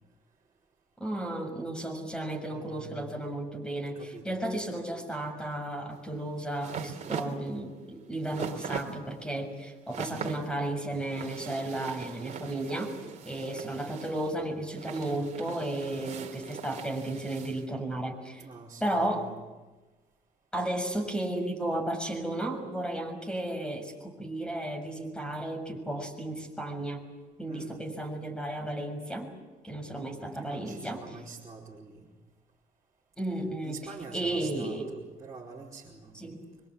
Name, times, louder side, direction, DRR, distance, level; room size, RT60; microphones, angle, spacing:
voice 1, 1.0-12.9 13.2-18.4 18.8-19.3 20.5-27.0 27.4-29.3 29.6-31.2 33.2-33.8 34.1-34.9 36.1-36.4, right 1 dB, 5° left, 5 dB, 6.5 m, -34 dB
voice 2, 2.4-3.0 3.9-4.6 18.4-19.4 27.5-27.8 30.3-32.1 33.6-36.1, right 4 dB, 20° right, -6 dB, 4.8 m, -46 dB
sound 1, 5.9-17.6, right 7 dB, 45° right, 2.9 m, -41 dB
25.0 x 24.0 x 8.6 m, 1.2 s
cardioid pair, 110°, 17 cm